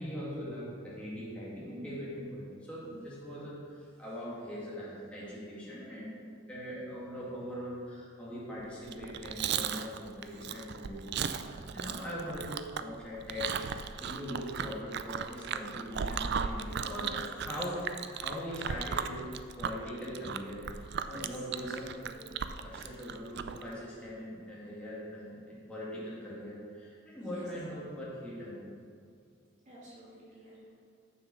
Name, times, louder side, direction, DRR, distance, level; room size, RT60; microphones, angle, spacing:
voice 1, 0.0-6.1 6.5-17.1 17.4-17.8 18.1-19.2 19.6-21.9 22.5-28.6, equal, 5° left, -8 dB, 2.1 m, -41 dB
Chewing mastication, 8.8-23.6, right 7 dB, 60° right, 0.4 m, -36 dB
voice 2, 17.0-17.5 21.0-22.2 27.2-27.4 29.7-30.7, right 1 dB, 40° right, -8 dB, 2.6 m, -50 dB
7.2 x 6.8 x 6.2 m, 2.3 s
head